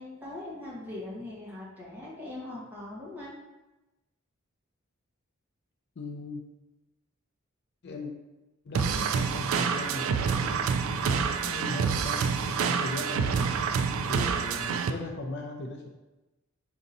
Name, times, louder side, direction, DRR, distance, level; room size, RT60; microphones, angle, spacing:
voice 1, 0.0-3.3, left 2 dB, 10° right, -7 dB, 1.2 m, -41 dB
voice 2, 6.0-6.4 7.8-8.1 8.6-10.6 11.0-13.6 14.1-15.9, left 2 dB, 55° left, 2 dB, 0.5 m, -38 dB
sound 1, 8.7-14.9, right 6 dB, 70° right, 0.3 m, -27 dB
4.9 x 2.7 x 3.9 m, 1.0 s
head